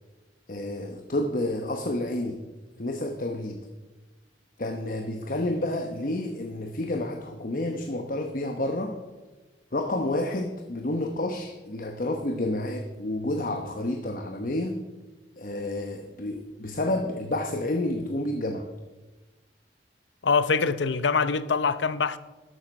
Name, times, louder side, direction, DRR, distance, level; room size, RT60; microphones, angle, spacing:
voice 1, 0.5-2.4 2.8-3.6 4.6-9.0 9.7-14.8 15.4-18.7, left 1 dB, 50° left, 1.0 m, -30 dB
voice 2, 20.2-22.2, left 5 dB, 85° left, 0.7 m, -24 dB
13.0 x 12.5 x 5.3 m
head